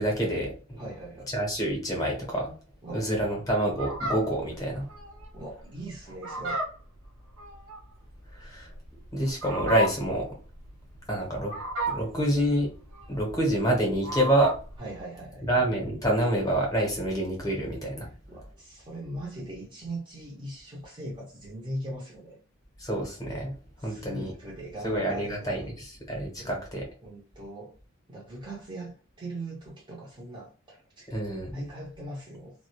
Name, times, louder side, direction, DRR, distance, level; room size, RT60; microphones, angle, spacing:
voice 1, 0.0-0.8 1.3-2.5 2.9-4.9 8.3-8.7 9.1-10.4 11.1-11.5 11.9-12.7 13.1-14.5 15.4-18.1 22.8-23.5 23.8-24.3 24.8-26.9 31.1-31.6, right 1 dB, 15° left, 0.8 m, -27 dB
voice 2, 0.8-1.3 2.8-3.1 5.3-6.6 14.8-15.5 18.3-22.4 23.8-25.7 26.4-26.6 27.0-27.7 28.1-31.1 31.5-32.5, right 1 dB, 20° right, 0.6 m, -40 dB
Fowl, 3.7-14.8, right 1 dB, 75° right, 0.6 m, -35 dB
2.2 x 2.1 x 2.8 m
head